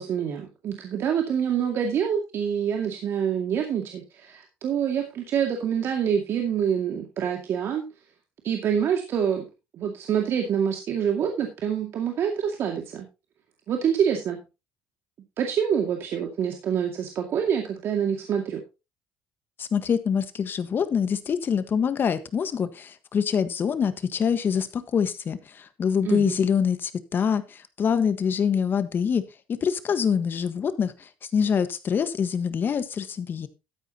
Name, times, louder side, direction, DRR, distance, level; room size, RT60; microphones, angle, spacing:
voice 1, 0.0-7.8 8.4-9.4 9.8-13.1 13.7-14.4 15.4-18.6 26.0-26.4, right 8 dB, 60° right, 3 dB, 2.2 m, -26 dB
voice 2, 19.6-29.2 29.5-33.5, left 7 dB, 45° left, 12 dB, 1.5 m, -25 dB
13.0 x 9.3 x 2.9 m, 0.27 s
supercardioid pair, 70°, 5 cm